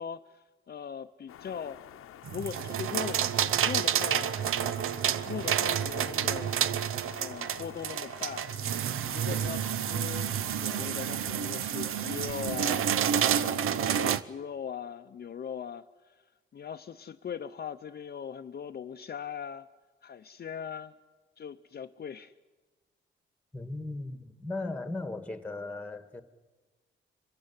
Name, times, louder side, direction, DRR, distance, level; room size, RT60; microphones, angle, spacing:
voice 1, 0.0-1.8 2.3-4.8 5.3-6.5 7.2-12.9 13.2-16.2 16.5-19.7 20.0-20.9 21.4-22.3, left 7 dB, 50° left, 0.6 m, -40 dB
sound 1, 1.3-12.8, left 10 dB, 90° left, 0.9 m, -49 dB
sound 2, 2.3-14.2, right 9 dB, 85° right, 0.7 m, -29 dB
voice 2, 23.5-26.2, left 2 dB, 5° left, 1.7 m, -37 dB
25.5 x 15.5 x 9.7 m
cardioid pair, 85°, 21 cm